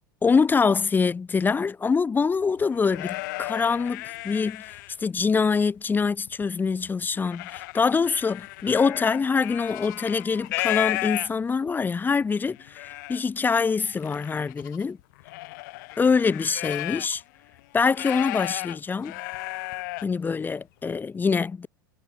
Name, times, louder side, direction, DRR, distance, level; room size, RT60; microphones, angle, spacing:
voice 1, 0.2-15.0 16.0-17.2 17.7-19.1 20.0-21.7, left 5 dB, 15° left, 0.9 m, -24 dB
sound 1, 2.4-5.2 5.7-6.4 6.8-11.7 12.2-12.3 12.5-13.2 13.8-17.2 17.5-20.1, left 22 dB, 55° left, 1.0 m, -34 dB
figure-of-eight pair, 80°, 12 cm